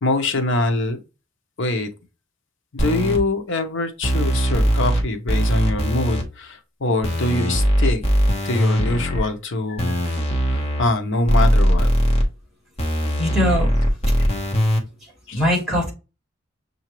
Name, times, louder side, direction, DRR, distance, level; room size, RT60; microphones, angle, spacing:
voice 1, 0.0-1.0 1.6-1.9 2.7-8.0 8.4-10.0 10.8-11.9 14.2-14.3 15.3-15.4, left 2 dB, 65° left, 0.8 m, -23 dB
sound 1, 2.8-3.2 4.0-5.0 5.3-6.2 7.0-9.2 9.8-10.8 11.3-12.2 12.8-14.8, equal, 30° left, 1.1 m, -20 dB
voice 2, 13.2-13.7 15.3-15.9, left 1 dB, ahead, 2.8 m, -21 dB
6.6 x 2.7 x 3.0 m
head